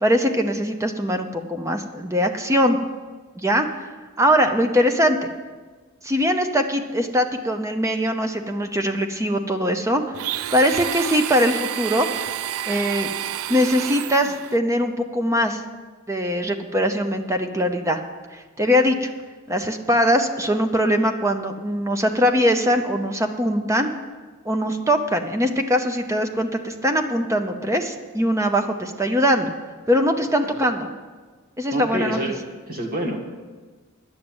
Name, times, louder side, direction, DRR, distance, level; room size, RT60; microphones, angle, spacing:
voice 1, 0.0-2.8 3.4-3.7 4.2-5.3 6.0-10.1 10.5-12.1 12.7-13.1 13.5-15.6 16.1-18.0 18.3-19.1 19.5-23.9 24.5-29.5 29.9-30.9 31.6-32.2, equal, 15° right, 6 dB, 0.7 m, -21 dB
Domestic sounds home sounds, 10.1-14.6, right 11 dB, 80° right, 0.3 m, -29 dB
voice 2, 31.7-32.4 32.7-33.2, equal, 40° right, 2 dB, 1.6 m, -27 dB
10.5 x 6.5 x 8.8 m, 1.4 s
head